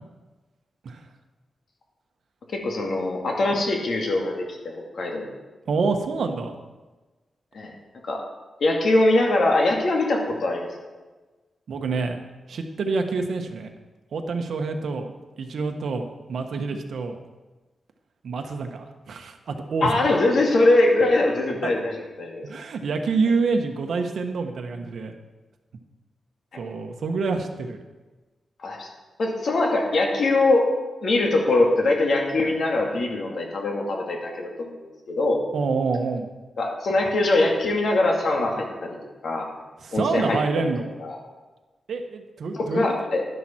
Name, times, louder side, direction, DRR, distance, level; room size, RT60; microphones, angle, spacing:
voice 1, 2.5-5.3 7.5-7.7 8.0-8.2 8.6-10.7 19.8-22.4 28.6-28.9 29.2-30.7 31.0-34.8 35.1-35.4 36.6-39.0 39.2-39.5 39.9-40.7 41.0-41.2 42.5-43.2, left 2 dB, 60° left, 0 dB, 2.1 m, -22 dB
voice 2, 5.7-6.6 11.7-12.2 12.5-13.7 14.1-15.1 15.4-17.2 18.2-20.0 21.6-21.7 22.4-25.1 26.6-27.8 35.5-36.3 39.8-40.9 41.9-43.0, right 4 dB, 65° right, 5 dB, 1.2 m, -27 dB
11.0 x 11.0 x 4.4 m, 1.2 s
wide cardioid pair, 150°, 0 cm